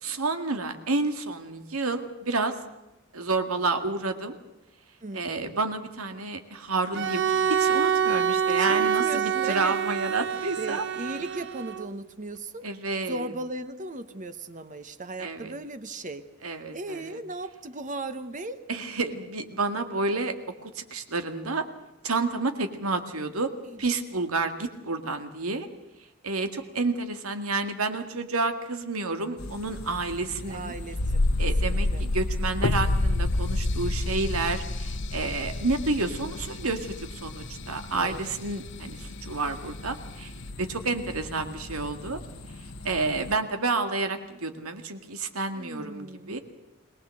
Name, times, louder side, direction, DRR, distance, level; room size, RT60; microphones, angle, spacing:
voice 1, 0.0-2.5 3.1-4.4 5.1-10.8 12.6-13.3 15.2-15.5 16.4-17.2 18.7-20.3 20.6-21.6 22.0-23.5 23.8-25.7 26.2-30.7 31.4-40.3 40.6-42.2 42.8-46.4, right 3 dB, 90° right, 7 dB, 2.0 m, -30 dB
voice 2, 5.0-5.6 8.5-9.8 10.6-12.7 13.1-18.6 23.7-23.8 30.5-31.2 31.6-32.0 38.0-38.3 45.5-46.4, right 2 dB, 35° right, 11 dB, 1.1 m, -37 dB
Bowed string instrument, 6.9-11.9, right 7 dB, 55° right, 0.9 m, -26 dB
sound 1, 29.4-43.3, left 1 dB, 75° left, 1.3 m, -41 dB
sound 2, 31.0-37.8 38.1-38.2, left 2 dB, 55° left, 0.8 m, -27 dB
22.5 x 19.5 x 7.7 m, 0.95 s
head